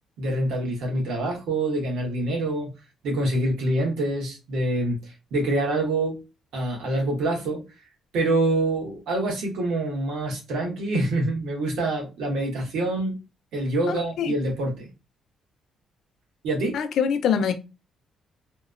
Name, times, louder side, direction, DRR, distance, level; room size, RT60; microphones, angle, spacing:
voice 1, 0.2-2.7 3.0-6.1 6.5-7.6 8.1-13.1 13.5-14.9 16.4-16.8, right 2 dB, 85° right, 1.2 m, -26 dB
voice 2, 13.9-14.3 16.7-17.5, left 7 dB, 70° left, 0.4 m, -24 dB
2.8 x 2.1 x 2.4 m
cardioid pair, 90°, 0 cm